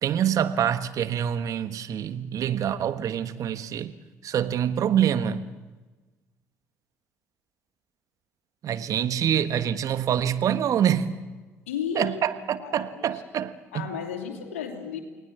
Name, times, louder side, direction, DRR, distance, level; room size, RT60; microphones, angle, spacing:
voice 1, 0.0-3.9 4.2-5.5 8.6-11.1 11.9-13.9, right 9 dB, 50° right, 1.3 m, -26 dB
voice 2, 11.7-13.1 13.7-15.0, left 7 dB, 80° left, 2.9 m, -34 dB
29.5 x 18.5 x 7.3 m
figure-of-eight pair, 50°, 7 cm